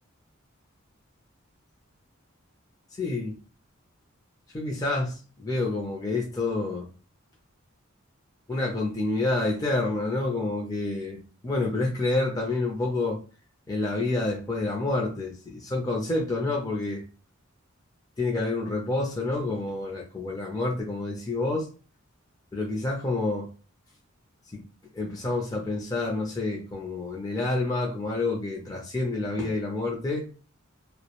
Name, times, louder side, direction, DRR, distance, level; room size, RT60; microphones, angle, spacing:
voice 1, 3.0-3.4 4.5-6.9 8.5-13.2 13.7-17.0 18.2-21.7 22.5-23.5 24.5-24.6 24.9-30.2, left 2 dB, 20° left, 0.5 m, -28 dB
2.2 x 2.0 x 2.9 m
head